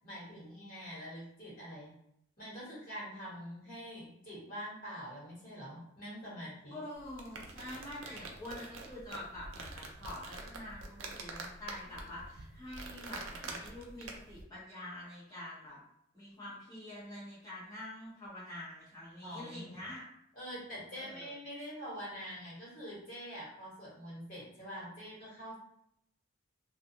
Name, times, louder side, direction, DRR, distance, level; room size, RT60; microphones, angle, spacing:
voice 1, 0.0-2.0 2.4-6.8 19.2-19.9 20.3-25.6, equal, 45° left, -8 dB, 1.4 m, -45 dB
voice 2, 6.7-15.8 16.1-20.0 20.9-21.3, left 1 dB, 20° left, -9 dB, 1.0 m, -46 dB
sound 1, 7.0-14.4, right 3 dB, 70° right, 0.4 m, -46 dB
2.4 x 2.3 x 2.7 m, 0.71 s
head